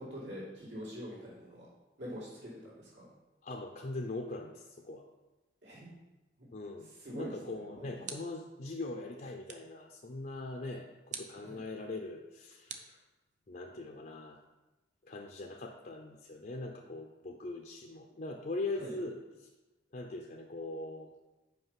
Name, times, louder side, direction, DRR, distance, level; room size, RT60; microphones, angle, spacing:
voice 1, 0.0-1.7 2.0-3.1 5.6-5.9 6.4-6.5 6.9-8.1 11.3-11.6 18.7-19.0, equal, 75° right, -7 dB, 2.7 m, -45 dB
voice 2, 3.4-5.1 6.5-13.0 13.5-14.4 15.0-19.5 19.9-21.1, left 2 dB, 45° left, 1 dB, 0.5 m, -41 dB
sound 1, 8.0-8.6 9.5-9.8 11.1-11.5 12.7-13.6, right 6 dB, 40° right, 0.6 m, -47 dB
5.5 x 5.1 x 5.7 m, 1.1 s
head